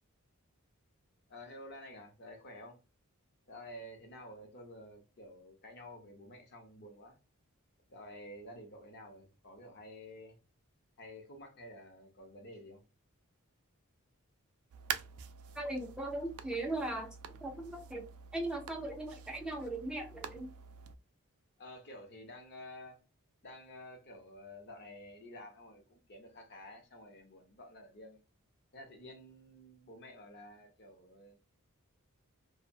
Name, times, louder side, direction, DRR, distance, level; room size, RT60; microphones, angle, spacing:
voice 1, 1.3-2.8 3.5-7.2 7.9-10.4 11.0-12.8 21.6-23.0 23.4-28.2 28.7-31.4, left 1 dB, 50° left, 0.7 m, -51 dB
sound 1, 14.7-21.0, right 8 dB, 70° right, 0.4 m, -46 dB
voice 2, 15.6-20.5, right 2 dB, 5° right, 0.4 m, -39 dB
2.6 x 2.1 x 2.6 m
head